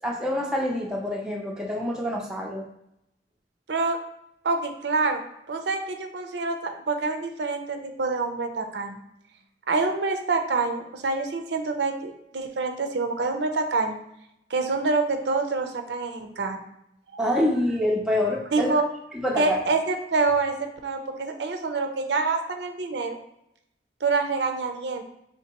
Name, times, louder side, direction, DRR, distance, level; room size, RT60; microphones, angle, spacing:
voice 1, 0.0-2.7 17.2-18.7 19.1-19.6, left 1 dB, 5° right, -2 dB, 0.4 m, -26 dB
voice 2, 4.4-5.2 5.5-9.0 9.7-14.0 14.5-16.6 17.1-17.2 18.5-18.8 19.4-23.2 24.0-25.0, right 3 dB, 75° right, 6 dB, 0.6 m, -26 dB
4.4 x 3.3 x 2.9 m, 0.79 s
head